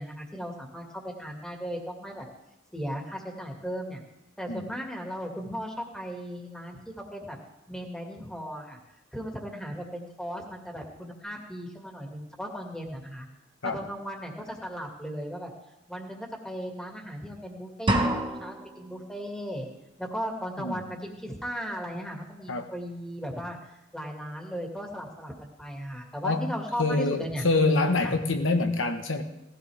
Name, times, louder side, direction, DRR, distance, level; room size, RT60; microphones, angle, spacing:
voice 1, 0.0-2.3 2.7-4.0 4.4-7.4 7.7-8.8 9.1-13.3 13.6-15.5 15.9-19.7 20.0-27.4 28.0-28.1, equal, 5° left, 1 dB, 2.2 m, -37 dB
sound 1, 17.9-18.9, right 1 dB, 25° right, 1.3 m, -26 dB
voice 2, 26.8-29.2, left 3 dB, 80° left, 6 dB, 1.4 m, -26 dB
18.0 x 15.0 x 3.6 m, 0.89 s
head